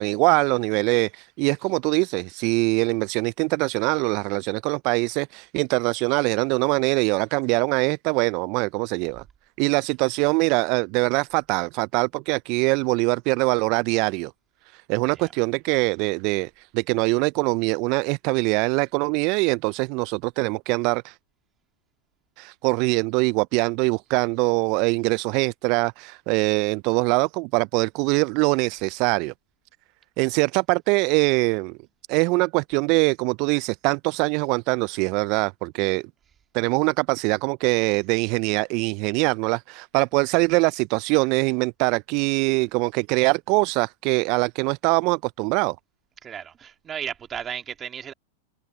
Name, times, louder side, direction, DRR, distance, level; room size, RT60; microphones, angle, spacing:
voice 1, 0.0-9.2 9.6-14.3 14.7-21.2 22.4-29.3 30.2-31.8 32.1-36.0 36.5-45.8, right 28 dB, 50° right, 0.3 m, -23 dB
voice 2, 46.2-48.1, right 8 dB, 25° right, 2.6 m, -34 dB
hypercardioid pair, 105°, 0 cm